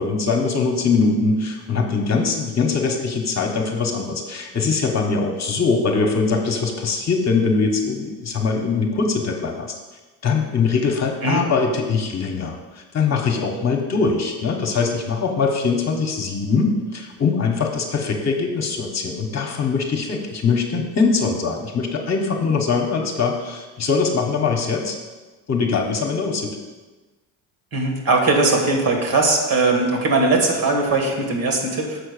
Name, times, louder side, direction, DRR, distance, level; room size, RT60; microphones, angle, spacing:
voice 1, 0.0-9.7 10.2-12.6 12.9-25.0 25.5-26.6, left 4 dB, 35° left, 1 dB, 1.2 m, -22 dB
voice 2, 27.7-32.0, right 3 dB, 50° right, 2 dB, 2.2 m, -19 dB
6.8 x 4.4 x 6.7 m, 1.3 s
supercardioid pair, 90°, 45 cm